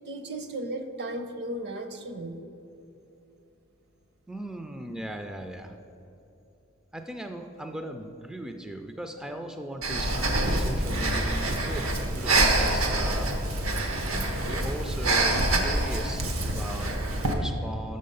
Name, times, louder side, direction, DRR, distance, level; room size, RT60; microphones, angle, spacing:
voice 1, 0.1-2.4, right 1 dB, 55° right, 7 dB, 0.7 m, -35 dB
voice 2, 4.3-5.7 6.9-13.6 14.4-18.0, equal, 5° right, 5 dB, 0.3 m, -38 dB
Breathing, 9.8-17.3, right 2 dB, 85° right, 0.9 m, -26 dB
7.0 x 6.5 x 5.4 m, 2.9 s
head